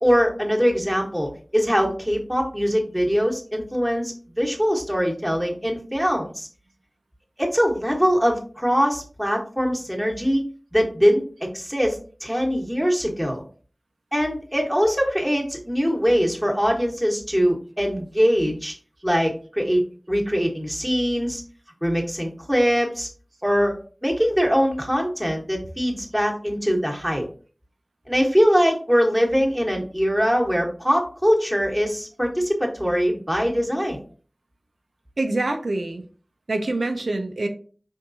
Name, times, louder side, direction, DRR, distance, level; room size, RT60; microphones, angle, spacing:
voice 1, 0.0-6.5 7.4-10.4 10.7-13.4 14.1-18.7 19.0-19.8 20.1-21.4 21.8-23.1 23.4-23.8 24.0-27.2 28.1-34.0, equal, ahead, 0 dB, 1.2 m, -22 dB
voice 2, 35.2-36.0 36.5-37.5, right 2 dB, 85° right, 6 dB, 0.6 m, -25 dB
4.5 x 3.6 x 2.6 m, 0.40 s
wide cardioid pair, 55°, 0 cm